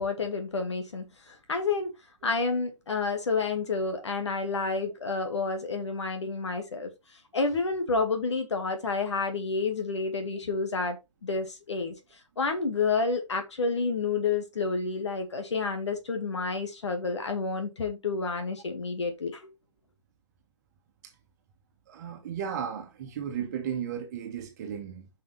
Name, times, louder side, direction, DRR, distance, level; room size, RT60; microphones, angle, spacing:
voice 1, 0.0-1.9 2.2-6.9 7.3-11.0 11.2-11.9 12.4-19.5, left 4 dB, 65° left, 2.0 m, -29 dB
voice 2, 21.9-25.1, right 8 dB, 35° right, 1.5 m, -35 dB
9.4 x 5.6 x 3.3 m
figure-of-eight pair, 140°, 16 cm